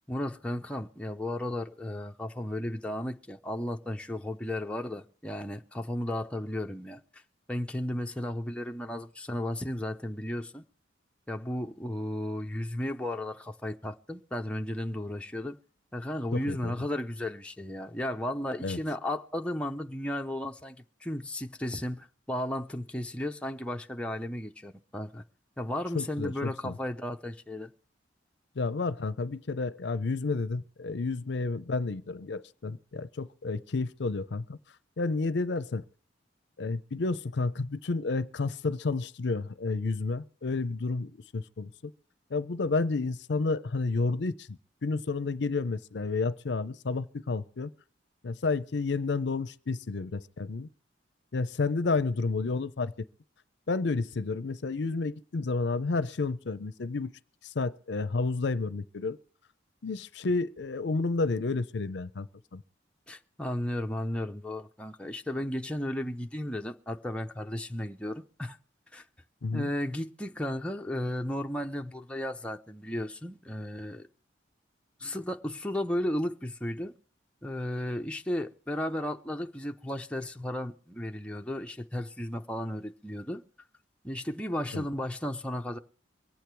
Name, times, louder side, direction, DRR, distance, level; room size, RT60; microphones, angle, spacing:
voice 1, 0.1-7.2 7.5-10.6 11.3-15.6 15.9-25.2 25.6-27.7 63.1-68.6 68.9-69.0 69.5-74.1 75.0-76.9 77.4-83.4 84.0-85.8, left 1 dB, 5° left, 0.6 m, -34 dB
voice 2, 16.3-16.7 18.6-18.8 25.9-26.7 28.6-34.6 35.0-35.8 36.6-41.7 42.3-47.7 48.2-50.7 51.3-52.9 53.7-57.1 57.4-59.2 59.8-62.3 62.5-62.6 69.4-69.7 84.7-84.9, left 3 dB, 65° left, 0.5 m, -31 dB
23.5 x 8.6 x 4.6 m
head